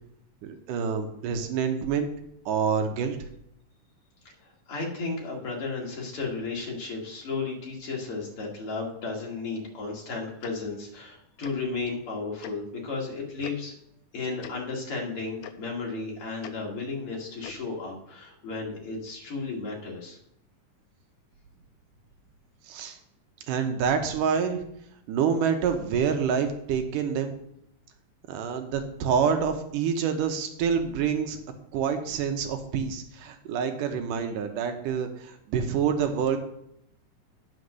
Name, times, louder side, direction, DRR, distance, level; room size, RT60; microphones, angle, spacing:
voice 1, 0.4-2.1 2.5-3.2 22.7-23.0 23.5-24.6 25.1-27.3 28.3-31.4 31.7-36.4, right 7 dB, 80° right, 6 dB, 2.6 m, -27 dB
voice 2, 4.4-13.8 14.1-20.2, left 3 dB, 45° left, -2 dB, 3.0 m, -34 dB
Tick-tock, 10.4-10.5 11.4-11.5 12.4-12.5 13.4-13.5 14.4-14.5 15.4-15.5 16.4-16.5 17.4-17.6, left 10 dB, 80° left, 1.5 m, -41 dB
9.5 x 6.4 x 6.5 m, 0.75 s
omnidirectional pair, 3.8 m